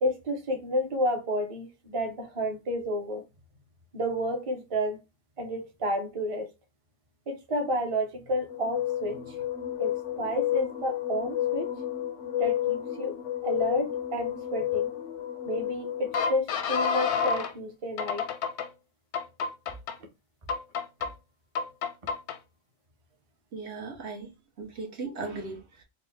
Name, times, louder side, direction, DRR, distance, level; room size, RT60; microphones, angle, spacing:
voice 1, 0.0-3.2 3.9-5.0 5.4-6.5 7.3-9.4 9.8-11.7 12.4-13.2 13.4-14.9 15.5-18.3, equal, 35° right, 0.7 m, -31 dB
sound 1, 8.5-17.5 18.0-18.7 19.1-19.9 20.5-21.1 21.6-22.4, left 9 dB, 85° left, 0.9 m, -30 dB
voice 2, 23.5-24.3 24.6-25.8, right 3 dB, 75° right, 1.3 m, -37 dB
3.7 x 2.2 x 3.4 m
omnidirectional pair, 1.1 m